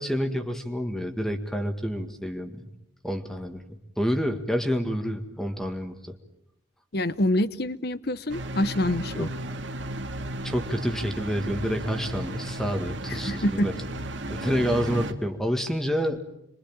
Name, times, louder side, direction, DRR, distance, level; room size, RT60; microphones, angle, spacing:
voice 1, 0.0-2.6 3.0-3.6 4.0-6.2 9.1-9.3 10.4-13.7 14.3-16.2, equal, ahead, 5 dB, 1.9 m, -28 dB
voice 2, 6.9-9.3 13.1-13.7, left 1 dB, 50° left, 16 dB, 1.0 m, -26 dB
sound 1, 8.3-15.1, right 1 dB, 70° right, 2.3 m, -34 dB
27.5 x 23.5 x 8.9 m, 0.81 s
head